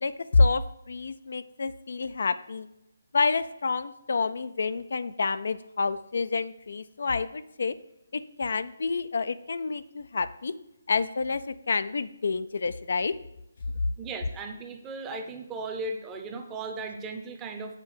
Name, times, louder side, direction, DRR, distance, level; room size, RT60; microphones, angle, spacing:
voice 1, 0.0-2.7 3.1-7.7 8.1-10.5 10.9-13.1, left 4 dB, 65° left, 13 dB, 0.3 m, -28 dB
voice 2, 14.0-17.8, right 3 dB, 15° right, 5 dB, 0.7 m, -36 dB
7.4 x 3.5 x 6.2 m, 0.83 s
hypercardioid pair, 160°, 0 cm